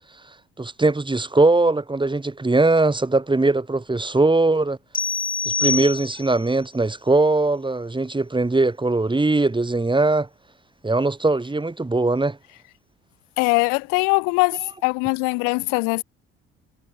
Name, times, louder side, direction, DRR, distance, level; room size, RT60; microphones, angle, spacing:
voice 1, 0.6-4.8 5.6-10.3 10.8-12.4, right 2 dB, 15° right, 2.3 m, -20 dB
sound 1, 4.9-6.5, left 4 dB, 25° left, 2.3 m, -25 dB
voice 2, 13.4-16.0, left 33 dB, 85° left, 1.6 m, -21 dB
supercardioid pair, 60°, 31 cm